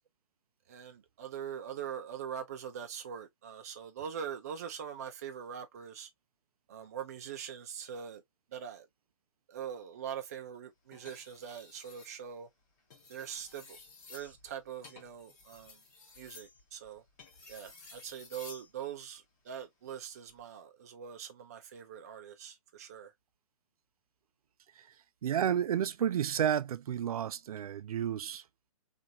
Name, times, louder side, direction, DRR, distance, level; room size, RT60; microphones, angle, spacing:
voice 1, 0.7-6.1 6.7-8.2 8.5-8.9 9.5-12.5 13.1-13.8 14.1-15.8 16.2-17.0 17.5-23.1, right 8 dB, 25° right, 0.5 m, -43 dB
sound 1, 10.9-12.1 12.8-18.7 20.1-20.4, left 4 dB, 30° left, 1.3 m, -54 dB
voice 2, 25.2-28.4, right 9 dB, 85° right, 0.4 m, -31 dB
2.9 x 2.5 x 2.5 m
hypercardioid pair, 175°, 18 cm